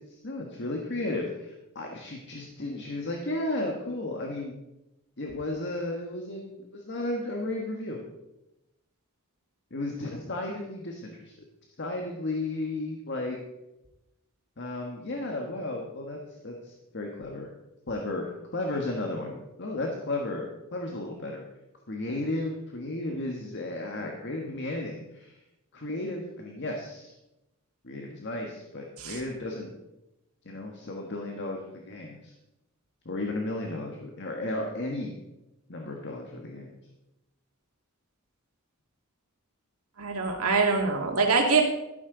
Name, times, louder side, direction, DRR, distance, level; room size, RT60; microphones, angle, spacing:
voice 1, 0.0-4.6 5.2-8.0 9.7-11.4 11.8-13.4 14.6-16.2 16.4-17.5 17.9-21.4 21.9-25.4 25.7-27.1 27.8-29.7 30.4-32.3 33.0-35.1 35.7-36.7 40.5-40.6, left 2 dB, 55° left, 1 dB, 1.5 m, -34 dB
voice 2, 40.0-41.6, right 4 dB, 90° right, 2 dB, 2.3 m, -24 dB
13.0 x 11.5 x 4.0 m, 0.94 s
head